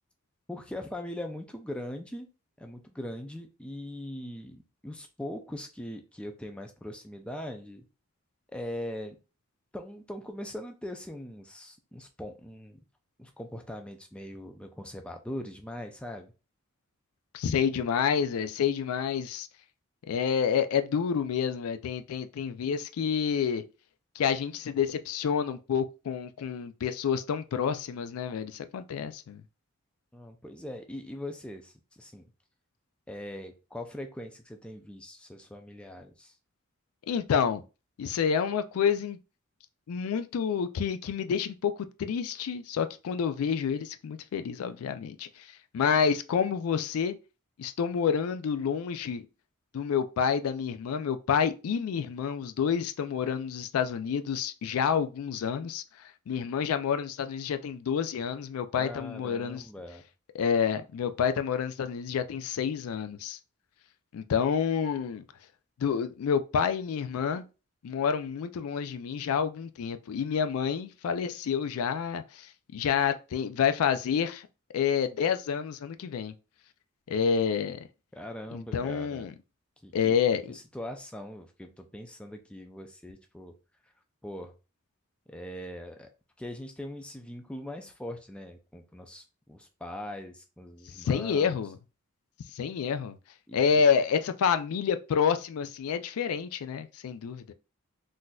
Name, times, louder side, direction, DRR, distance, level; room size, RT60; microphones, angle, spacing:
voice 1, 0.5-2.3 2.6-7.8 8.5-9.2 9.7-12.8 13.2-16.3 30.1-32.2 33.1-36.4 58.7-60.0 78.1-79.3 79.8-80.2 80.5-83.5 84.2-84.5 85.3-86.1 86.4-91.6 93.5-93.8, left 1 dB, 5° left, 0.3 m, -41 dB
voice 2, 17.3-19.5 20.1-23.6 24.2-29.4 37.1-37.6 38.0-39.2 39.9-41.7 42.0-45.5 45.7-47.2 47.6-49.3 49.7-55.8 56.3-59.6 60.3-63.4 64.1-65.2 65.8-67.4 67.8-74.4 74.7-76.3 77.1-77.9 78.5-79.3 79.9-80.5 91.0-91.8 92.5-93.2 93.5-97.5, left 7 dB, 85° left, 0.3 m, -28 dB
3.9 x 2.5 x 2.3 m
head